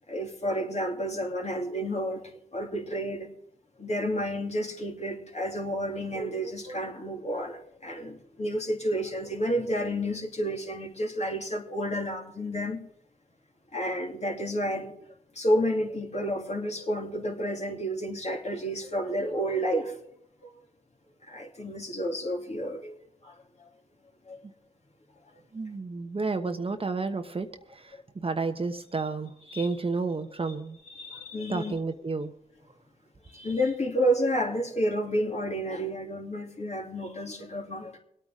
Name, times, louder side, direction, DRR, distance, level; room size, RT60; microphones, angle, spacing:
voice 1, 0.1-3.3 3.8-12.8 13.7-14.9 15.3-20.0 20.4-20.5 21.3-23.0 23.2-23.7 24.3-24.4 29.5-29.6 30.9-31.7 33.3-38.0, equal, 40° left, 1 dB, 2.9 m, -30 dB
voice 2, 25.5-30.8 31.5-32.3, right 4 dB, 35° right, 7 dB, 1.0 m, -31 dB
25.0 x 9.0 x 3.7 m, 0.74 s
cardioid pair, 55°, 17 cm